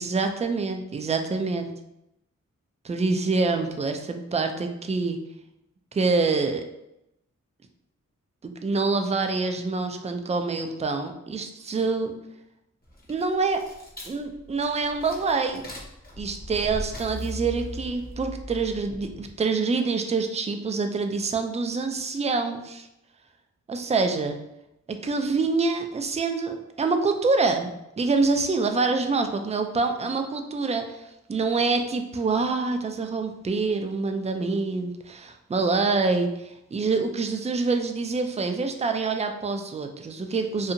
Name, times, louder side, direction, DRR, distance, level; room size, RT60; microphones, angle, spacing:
voice 1, 0.0-1.7 2.8-5.2 5.9-6.7 8.4-12.1 13.1-13.6 14.0-15.6 16.2-22.9 23.7-24.4 24.9-40.7, right 4 dB, 20° right, 6 dB, 0.4 m, -26 dB
sound 1, 12.8-19.4, left 1 dB, 30° left, 1.0 m, -39 dB
2.7 x 2.4 x 2.6 m, 0.85 s
cardioid pair, 45°, 32 cm